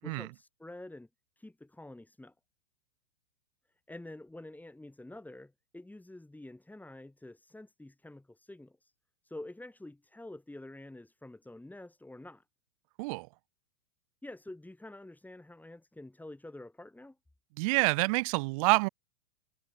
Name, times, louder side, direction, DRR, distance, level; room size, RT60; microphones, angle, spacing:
voice 1, 0.0-1.1 1.4-2.3 3.9-8.9 9.2-12.4 14.2-17.2, left 1 dB, 5° left, 6.4 m, -48 dB
voice 2, 17.6-18.9, right 26 dB, 30° right, 0.4 m, -27 dB
hypercardioid pair, 115°, 41 cm